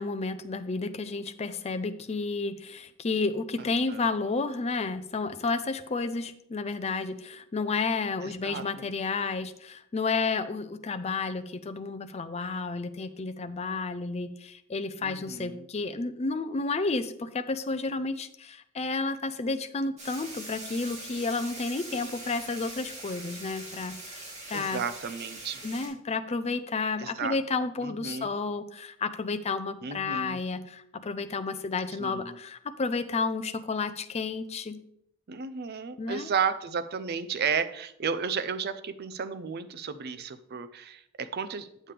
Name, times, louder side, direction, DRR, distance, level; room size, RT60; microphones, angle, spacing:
voice 1, 0.0-24.8 25.6-34.8 36.0-36.3, left 3 dB, 30° left, 10 dB, 0.5 m, -31 dB
voice 2, 8.2-8.6 15.0-15.6 24.5-25.6 27.0-27.4 27.8-28.3 29.8-30.4 32.0-32.4 35.3-41.7, right 6 dB, 50° right, 12 dB, 0.5 m, -33 dB
sound 1, 20.0-25.9, right 2 dB, 35° right, 2.3 m, -42 dB
8.4 x 7.3 x 3.3 m, 0.74 s
head